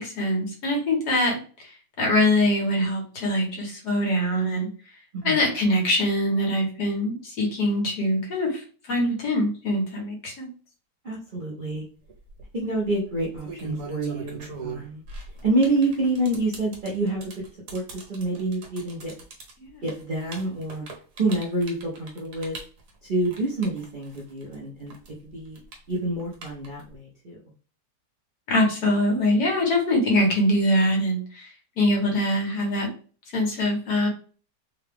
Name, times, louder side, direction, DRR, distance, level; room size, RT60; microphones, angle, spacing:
voice 1, 0.0-4.7 5.2-10.5 19.6-19.8 28.5-32.9 33.3-34.1, left 1 dB, 70° left, 0 dB, 1.8 m, -23 dB
voice 2, 11.0-11.8 12.5-15.0 15.4-17.4 17.7-19.1 19.8-20.8 21.2-22.6 23.0-24.9 25.2-25.6 25.9-27.4, right 2 dB, 45° right, -4 dB, 0.7 m, -27 dB
sound 1, 12.1-12.4 13.2-24.5 24.9-26.9, right 3 dB, 65° right, 1.4 m, -40 dB
3.7 x 2.3 x 3.4 m, 0.38 s
omnidirectional pair, 1.8 m